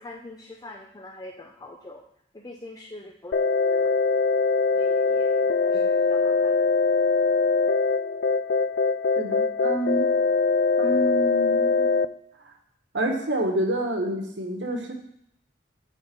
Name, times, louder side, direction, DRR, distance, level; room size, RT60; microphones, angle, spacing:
voice 1, 0.0-2.0 2.3-3.4 3.7-3.9 4.7-6.7, left 2 dB, 20° left, 1 dB, 0.7 m, -44 dB
sound 1, 3.3-12.1, left 4 dB, 65° left, 0.4 m, -22 dB
voice 2, 9.2-10.1 10.8-11.9 12.4-12.5 12.9-14.9, right 1 dB, 85° right, 3 dB, 1.5 m, -28 dB
9.6 x 4.0 x 6.9 m, 0.73 s
head